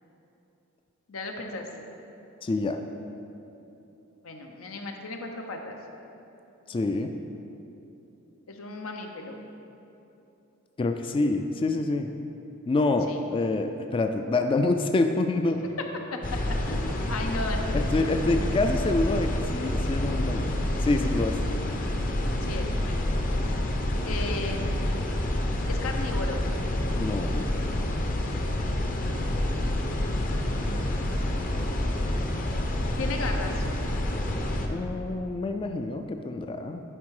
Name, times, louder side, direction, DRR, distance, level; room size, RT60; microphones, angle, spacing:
voice 1, 1.1-1.9 4.2-5.8 8.5-9.4 13.1-13.2 15.5-15.9 16.1-18.6 22.4-23.1 24.0-24.7 25.7-26.5 30.0-31.1 33.0-33.7, left 2 dB, 90° left, 3 dB, 0.8 m, -36 dB
voice 2, 2.4-2.8 6.7-7.1 10.8-12.1 12.7-15.6 17.7-20.5 20.8-21.4 27.0-27.5 34.7-36.8, left 2 dB, 25° left, 6 dB, 0.3 m, -26 dB
sound 1, 16.2-34.7, left 1 dB, 40° left, 0.7 m, -28 dB
11.0 x 4.4 x 4.8 m, 2.9 s
head